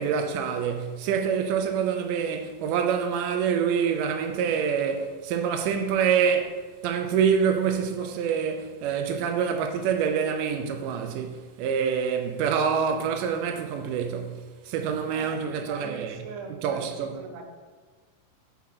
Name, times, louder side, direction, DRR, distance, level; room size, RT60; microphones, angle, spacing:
voice 1, 0.0-16.2 16.5-17.2, right 7 dB, 90° right, 2.2 m, -26 dB
voice 2, 15.1-17.4, right 5 dB, 75° right, 1.8 m, -41 dB
5.7 x 3.6 x 5.8 m
omnidirectional pair, 3.7 m